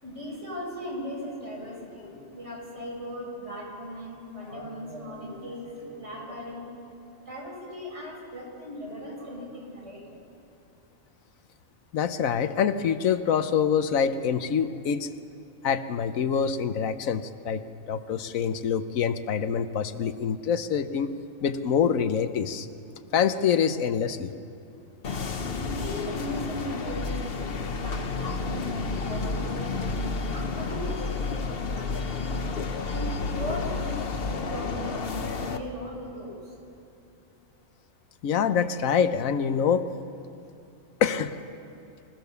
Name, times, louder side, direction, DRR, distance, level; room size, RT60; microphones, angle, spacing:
voice 1, 0.0-6.7 7.3-10.2 25.4-32.3 32.8-36.4, equal, 60° right, -3 dB, 5.3 m, -38 dB
voice 2, 11.9-15.1 15.6-21.1 21.4-22.7 23.1-24.3 38.2-39.9 41.0-41.4, left 7 dB, 85° left, 11 dB, 1.3 m, -25 dB
sound 1, 25.0-35.6, left 4 dB, 50° left, 1.1 m, -31 dB
25.5 x 16.0 x 6.9 m, 2.7 s
omnidirectional pair, 1.4 m